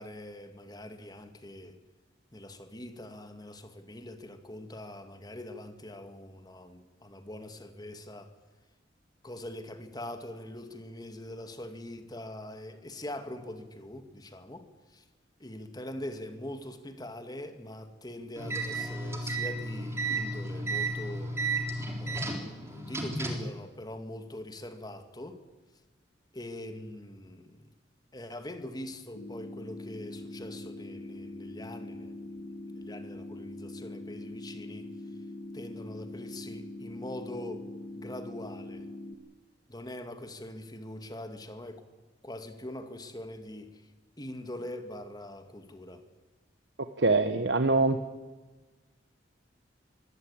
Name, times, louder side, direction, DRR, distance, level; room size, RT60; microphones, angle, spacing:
voice 1, 0.0-1.8 2.3-8.3 9.2-15.0 15.4-21.4 22.0-25.4 26.3-27.7 28.1-34.9 35.5-37.7 38.0-38.9 39.7-41.8 42.2-43.9 44.2-46.0, left 1 dB, 20° left, 2.1 m, -43 dB
sound 1, 18.4-23.5, right 2 dB, 15° right, 3.6 m, -33 dB
sound 2, 29.1-39.1, left 2 dB, 75° left, 2.1 m, -42 dB
voice 2, 47.0-48.0, right 3 dB, 70° right, 1.2 m, -24 dB
23.5 x 16.5 x 8.8 m
head